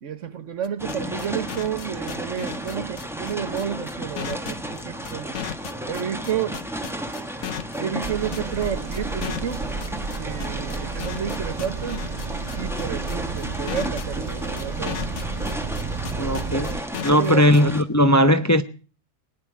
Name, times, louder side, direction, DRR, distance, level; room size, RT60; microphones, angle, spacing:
voice 1, 0.0-5.3 5.8-6.8 7.8-9.7 10.1-12.1 12.5-15.0 17.1-17.5, right 8 dB, 75° right, 1.4 m, -31 dB
sound 1, 0.6-17.6, left 8 dB, 70° left, 1.3 m, -34 dB
sound 2, 0.8-17.8, right 1 dB, ahead, 1.1 m, -33 dB
sound 3, 8.0-16.8, right 4 dB, 40° right, 0.9 m, -32 dB
voice 2, 16.2-18.6, equal, 20° left, 0.6 m, -18 dB
21.5 x 9.9 x 6.0 m
omnidirectional pair, 1.3 m